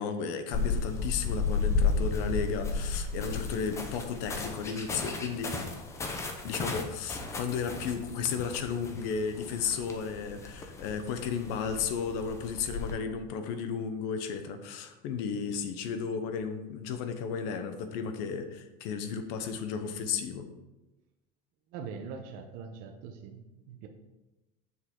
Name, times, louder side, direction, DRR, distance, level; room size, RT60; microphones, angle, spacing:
voice 1, 0.0-5.5 6.4-20.5, left 6 dB, 55° left, 8 dB, 0.8 m, -34 dB
sound 1, 0.5-13.0, left 4 dB, 15° left, 0.6 m, -34 dB
voice 2, 21.7-23.4 23.7-23.9, right 6 dB, 45° right, 4 dB, 0.8 m, -42 dB
7.3 x 6.4 x 3.7 m, 1.0 s
cardioid pair, 170°, 20 cm